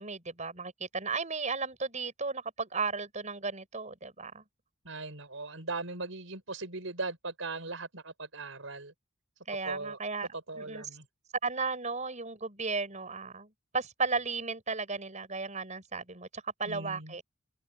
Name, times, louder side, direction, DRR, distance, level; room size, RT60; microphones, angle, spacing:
voice 1, 0.0-4.4 9.5-10.3 10.5-10.8 11.4-17.2, right 4 dB, 35° right, 6.7 m, -35 dB
voice 2, 4.8-8.9 9.6-10.0 10.5-11.0 16.6-17.2, right 3 dB, 75° right, 6.1 m, -39 dB
open air
head